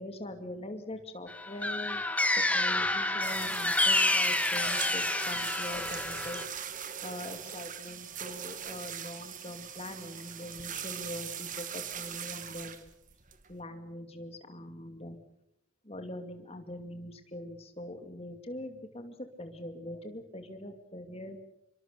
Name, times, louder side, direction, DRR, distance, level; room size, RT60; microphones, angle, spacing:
voice 1, 0.0-2.0 2.3-6.4 7.0-12.9 13.5-15.2 15.8-21.4, left 1 dB, 25° left, 7 dB, 2.5 m, -42 dB
sound 1, 1.3-6.4, left 2 dB, 5° left, 1.4 m, -29 dB
sound 2, 3.2-13.6, right 9 dB, 35° right, 1.9 m, -41 dB
25.5 x 24.5 x 6.9 m, 0.81 s
head